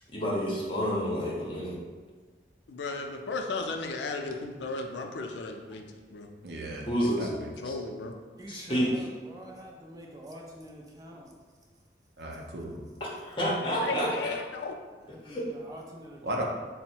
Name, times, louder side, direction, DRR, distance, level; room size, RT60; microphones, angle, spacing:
voice 1, 0.1-1.8 6.9-7.3 7.6-7.7 8.5-8.9 13.0-14.3 15.2-15.4, equal, 30° left, -5 dB, 0.8 m, -29 dB
voice 2, 2.7-5.8 6.1-6.3 7.6-8.1 13.8-14.7, left 3 dB, 80° left, 4 dB, 0.4 m, -35 dB
voice 3, 6.4-7.5 12.2-12.8 16.2-16.4, right 1 dB, 65° right, 0 dB, 0.6 m, -35 dB
voice 4, 8.4-11.4 15.0-16.4, right 1 dB, 20° right, -1 dB, 0.3 m, -46 dB
3.7 x 2.1 x 4.3 m, 1.4 s
head